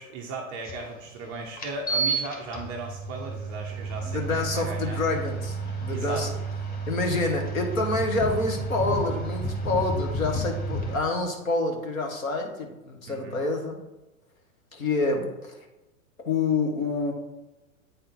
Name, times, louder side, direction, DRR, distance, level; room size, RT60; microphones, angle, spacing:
voice 1, 0.0-5.0 5.9-6.3 13.1-13.4, right 3 dB, 15° right, 0 dB, 0.3 m, -37 dB
sound 1, 0.6-0.7 1.6-11.0, right 3 dB, 20° left, 1.5 m, -31 dB
voice 2, 4.0-6.3 6.9-13.8 14.7-15.5 16.2-17.1, left 3 dB, 75° left, 2 dB, 1.6 m, -27 dB
8.6 x 3.8 x 4.3 m, 1.0 s
figure-of-eight pair, 105°, 41 cm